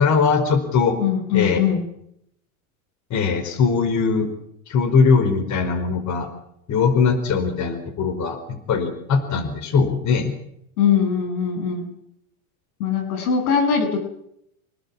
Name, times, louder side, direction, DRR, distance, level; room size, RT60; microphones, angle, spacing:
voice 1, 0.0-1.0 1.3-1.6 3.1-4.3 4.7-6.3 6.7-10.3, left 5 dB, 40° left, 10 dB, 4.7 m, -20 dB
voice 2, 1.0-1.8 10.8-11.9 12.8-14.0, left 7 dB, 75° left, 7 dB, 8.0 m, -21 dB
27.5 x 19.0 x 7.2 m, 0.74 s
supercardioid pair, 115°, 44 cm